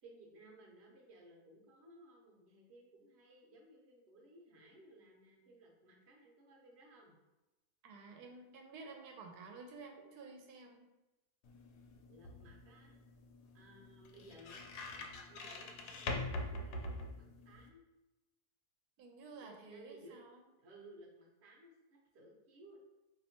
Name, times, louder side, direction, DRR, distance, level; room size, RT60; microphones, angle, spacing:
voice 1, 0.0-7.1 12.1-13.0 13.5-17.8 19.4-20.2 20.6-22.8, right 1 dB, 50° right, -1 dB, 1.0 m, -59 dB
voice 2, 7.8-10.9 19.0-20.4, right 4 dB, 85° right, 3 dB, 1.2 m, -52 dB
sound 1, 11.4-17.7, left 2 dB, 80° left, 1.1 m, -44 dB
4.2 x 2.8 x 2.8 m, 1.0 s
omnidirectional pair, 1.6 m